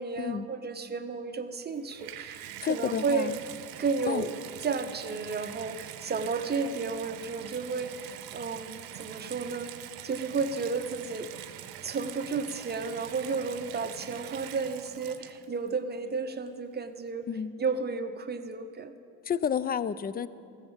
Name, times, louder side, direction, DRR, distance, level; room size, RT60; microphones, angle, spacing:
voice 1, 0.0-3.3 3.8-4.3 4.6-9.7 10.0-11.5 11.8-17.3 17.6-18.9, right 4 dB, 30° right, 8 dB, 0.9 m, -32 dB
Water tap faucet / Bathtub (filling or washing), 1.6-15.7 16.5-16.6, right 12 dB, 75° right, 0.8 m, -44 dB
voice 2, 2.6-3.4 4.1-4.2 17.3-17.5 19.2-20.3, left 7 dB, 25° left, 17 dB, 0.4 m, -30 dB
15.0 x 7.2 x 7.2 m, 2.3 s
supercardioid pair, 90°, 35 cm